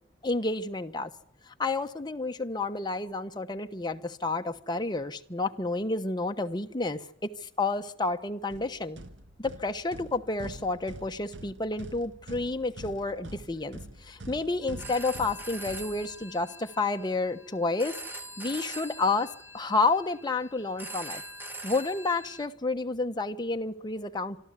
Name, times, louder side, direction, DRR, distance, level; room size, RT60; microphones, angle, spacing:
voice 1, 0.2-1.1 1.5-9.0 9.4-17.9 18.4-21.2 21.6-24.4, left 3 dB, 25° left, 1.1 m, -30 dB
sound 1, 8.5-16.5, right 1 dB, 70° right, 1.5 m, -46 dB
Telephone, 14.6-22.5, right 1 dB, 10° right, 2.2 m, -43 dB
25.5 x 13.5 x 8.2 m
head